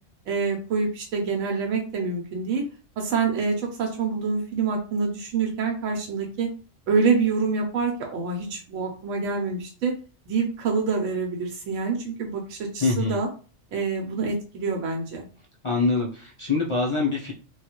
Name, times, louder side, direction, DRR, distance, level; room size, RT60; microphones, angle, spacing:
voice 1, 0.3-2.6 3.0-6.5 6.9-9.9 10.3-13.3 13.7-15.3, right 4 dB, 85° right, 1 dB, 1.0 m, -26 dB
voice 2, 12.8-13.2 15.6-17.3, left 3 dB, 55° left, -2 dB, 0.3 m, -24 dB
3.0 x 2.3 x 2.9 m, 0.37 s
omnidirectional pair, 1.3 m